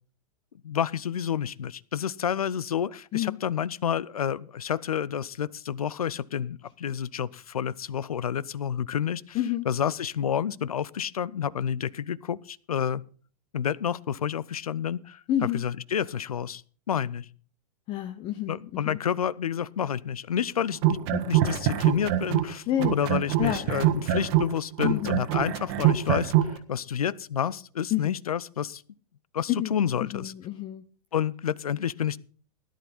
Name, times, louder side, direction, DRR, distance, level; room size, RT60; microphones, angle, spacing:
voice 1, 0.6-9.4 9.7-13.0 13.5-16.6 16.9-17.3 18.5-22.6 22.9-26.3 26.7-28.8 29.3-30.3 31.1-32.2, left 8 dB, 65° left, 22 dB, 0.7 m, -29 dB
voice 2, 9.3-9.7 15.3-15.7 17.9-19.0 22.7-23.0 23.4-23.7 24.8-25.2 27.9-28.2 29.5-30.9, left 12 dB, 25° left, 11 dB, 0.7 m, -29 dB
sound 1, 20.7-22.5 22.8-26.5, right 12 dB, 40° right, 1.5 m, -24 dB
17.0 x 11.5 x 4.2 m, 0.42 s
figure-of-eight pair, 100°, 20 cm